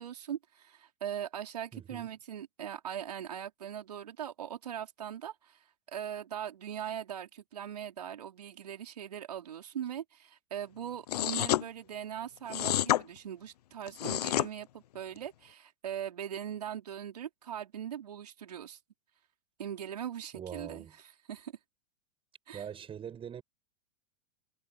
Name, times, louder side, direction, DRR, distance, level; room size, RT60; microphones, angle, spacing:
voice 1, 0.0-5.6 5.9-18.8 19.6-20.8 21.3-21.5 22.5-22.6, right 9 dB, 80° right, 4.6 m, -40 dB
voice 2, 1.7-2.1 20.3-20.9 22.5-23.4, right 8 dB, 25° right, 6.6 m, -42 dB
sound 1, 11.1-11.6 12.5-13.0 13.9-14.5, left 13 dB, 75° left, 0.5 m, -28 dB
hypercardioid pair, 100°, 20 cm